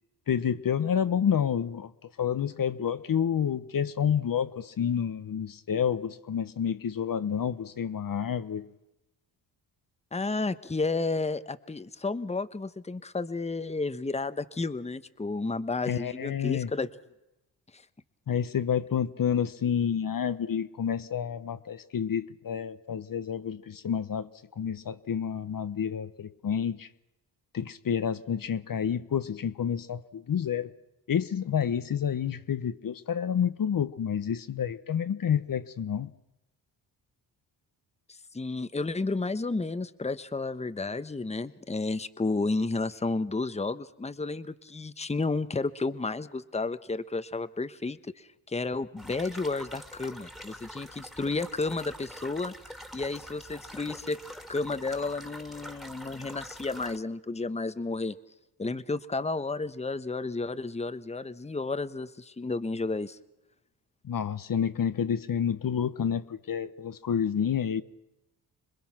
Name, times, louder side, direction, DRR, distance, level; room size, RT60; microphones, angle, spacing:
voice 1, 0.3-1.9 2.2-8.7 15.8-16.7 18.3-24.3 24.6-26.9 27.5-30.7 31.1-36.1 64.0-67.8, left 8 dB, 50° left, 1.2 m, -29 dB
voice 2, 10.1-16.9 17.7-17.8 38.3-54.2 54.5-58.1 58.6-63.2, left 3 dB, 15° left, 1.2 m, -32 dB
sound 1, 49.0-57.0, equal, ahead, 2.4 m, -45 dB
26.5 x 21.0 x 6.1 m
cardioid pair, 65°, 44 cm